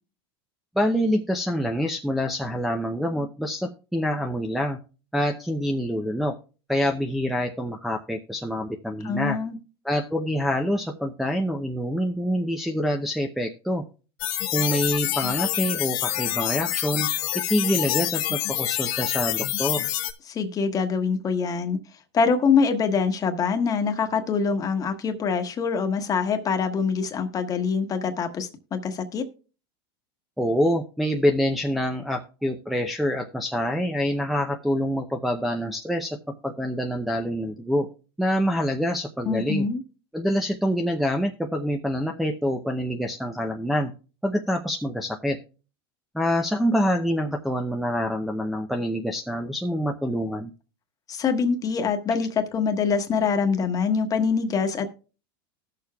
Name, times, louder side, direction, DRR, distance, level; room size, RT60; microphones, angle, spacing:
voice 1, 0.8-4.8 5.1-6.3 6.7-9.4 9.8-13.8 14.5-17.1 17.5-19.9 30.4-36.2 36.4-37.9 38.2-39.7 40.1-43.9 44.2-45.4 46.1-50.5, equal, ahead, 0 dB, 0.6 m, -26 dB
voice 2, 9.0-9.6 20.3-21.8 22.1-29.3 39.3-39.8 51.1-54.9, left 5 dB, 25° left, 7 dB, 1.3 m, -24 dB
sound 1, 14.2-20.1, left 15 dB, 60° left, 1.0 m, -27 dB
20.0 x 6.8 x 2.3 m, 0.35 s
supercardioid pair, 130°, 13 cm